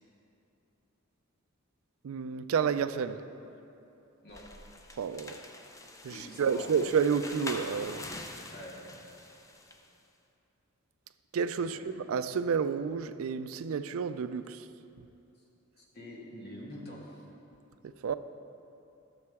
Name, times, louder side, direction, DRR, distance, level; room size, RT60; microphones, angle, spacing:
voice 1, 2.0-3.2 5.0-5.4 6.0-8.1 11.3-14.7 17.8-18.1, right 6 dB, 70° right, 0.4 m, -30 dB
sound 1, 4.3-9.9, left 2 dB, 15° left, 0.5 m, -45 dB
voice 2, 6.1-6.7 8.5-8.9 11.6-11.9 15.9-17.2, equal, 50° left, 1.6 m, -45 dB
12.5 x 6.9 x 3.5 m
head